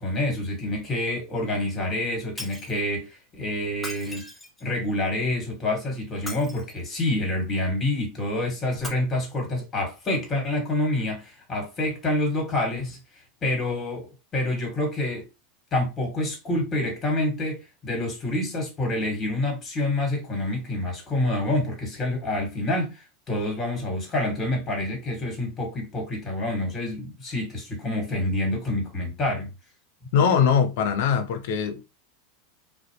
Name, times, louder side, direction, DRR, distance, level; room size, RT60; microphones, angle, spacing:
voice 1, 0.0-4.3 4.6-13.0 13.4-15.2 15.7-29.5, left 1 dB, 25° left, 1.4 m, -27 dB
Shatter, 2.4-2.8 3.7-4.8 6.1-7.0 8.7-8.9, left 1 dB, 10° left, 1.0 m, -39 dB
voice 2, 30.1-31.8, left 7 dB, 65° left, 0.5 m, -21 dB
2.5 x 2.0 x 2.9 m
hypercardioid pair, 95°, 0 cm